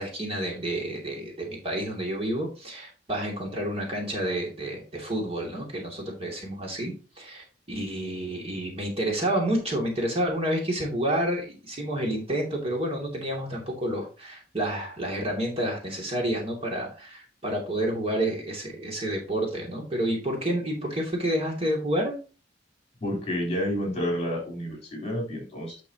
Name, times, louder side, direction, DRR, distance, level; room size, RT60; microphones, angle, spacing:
voice 1, 0.0-22.2, right 1 dB, 35° right, -1 dB, 2.6 m, -29 dB
voice 2, 23.0-25.8, equal, 35° left, 0 dB, 3.8 m, -30 dB
9.7 x 6.2 x 2.9 m, 0.34 s
head